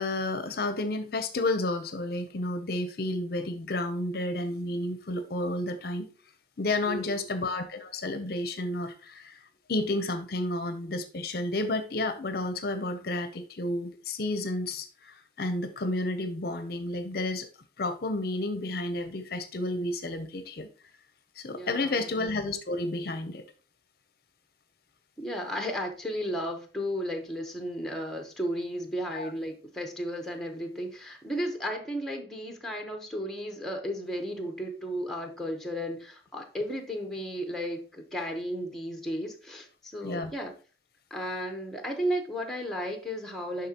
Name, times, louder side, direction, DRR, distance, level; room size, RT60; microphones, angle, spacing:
voice 1, 0.0-6.1 6.6-9.4 9.7-17.5 17.8-20.7 21.4-23.4 29.1-29.3 40.0-40.3, left 2 dB, 50° left, 0.6 m, -31 dB
voice 2, 6.8-7.3 21.6-22.1 25.2-40.5 41.1-43.7, equal, ahead, 0.9 m, -34 dB
11.0 x 3.8 x 2.9 m
head